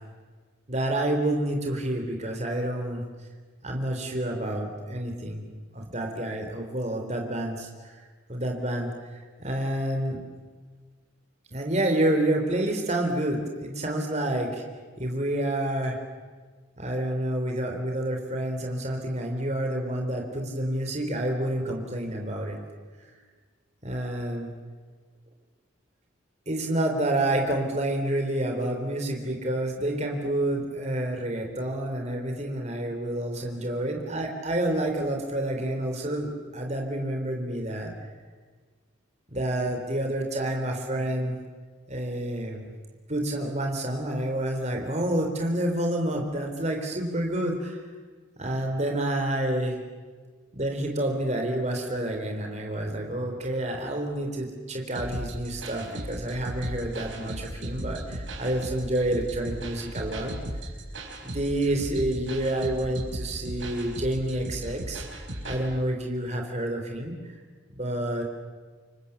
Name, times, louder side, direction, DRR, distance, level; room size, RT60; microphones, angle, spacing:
voice 1, 0.7-3.0 3.6-7.7 8.3-8.9 9.4-10.2 11.5-14.6 15.0-16.0 16.8-22.6 23.8-24.5 26.5-37.9 39.3-41.4 41.9-42.7 43.1-47.8 48.4-49.8 50.5-60.3 61.2-67.1 67.8-68.2, right 1 dB, 35° right, 2 dB, 3.8 m, -28 dB
sound 1, 54.9-65.6, right 1 dB, 75° right, 5.4 m, -36 dB
28.0 x 24.0 x 7.3 m, 1.5 s
head